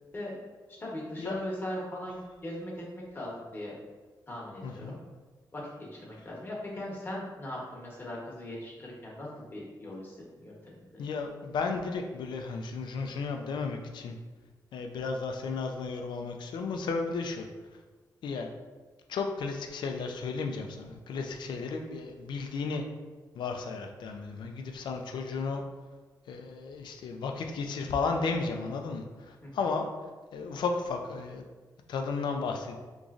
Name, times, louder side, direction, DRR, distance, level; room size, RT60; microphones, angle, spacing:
voice 1, 0.7-3.8 4.3-5.0 5.5-11.1 29.4-29.5, left 1 dB, 30° left, -4 dB, 1.0 m, -39 dB
voice 2, 4.6-5.0 11.0-14.2 14.7-17.5 18.2-18.5 19.1-22.8 23.4-25.6 26.3-29.0 29.5-29.8 30.3-31.4 31.9-32.8, left 4 dB, 85° left, 4 dB, 0.4 m, -33 dB
3.7 x 3.0 x 2.5 m, 1.3 s
cardioid pair, 100°, 8 cm